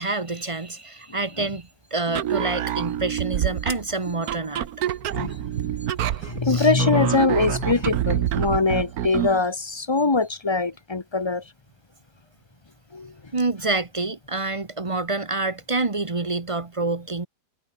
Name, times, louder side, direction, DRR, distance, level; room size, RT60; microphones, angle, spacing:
voice 1, 0.0-4.7 6.4-6.7 13.3-17.3, right 3 dB, 25° right, 0.9 m, -27 dB
sound 1, 1.4-8.2, left 2 dB, 40° left, 6.7 m, -51 dB
sound 2, 2.1-9.4, right 11 dB, 65° right, 1.2 m, -27 dB
voice 2, 6.2-11.4 12.9-13.1, left 3 dB, 25° left, 0.7 m, -22 dB
omnidirectional pair, 1.9 m